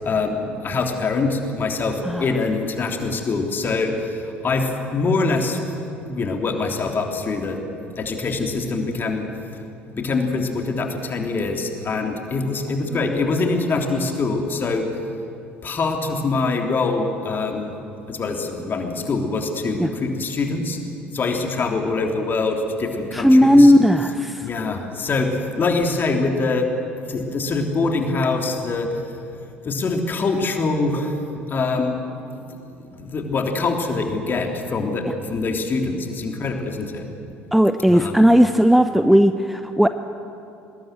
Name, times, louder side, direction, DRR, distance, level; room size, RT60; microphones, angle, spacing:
voice 1, 0.0-5.6 6.1-7.6 7.9-9.2 10.0-14.9 15.6-17.7 18.1-20.8 21.1-23.7 24.4-25.3 25.6-26.7 27.1-29.0 29.6-31.2 31.5-32.0 32.4-37.0 37.9-38.1, left 3 dB, 30° left, 3 dB, 3.4 m, -24 dB
voice 2, 12.9-13.3 19.8-19.9 23.1-24.5 37.5-39.9, equal, ahead, 10 dB, 0.8 m, -15 dB
25.0 x 20.5 x 7.7 m, 2.7 s
figure-of-eight pair, 60°, 7 cm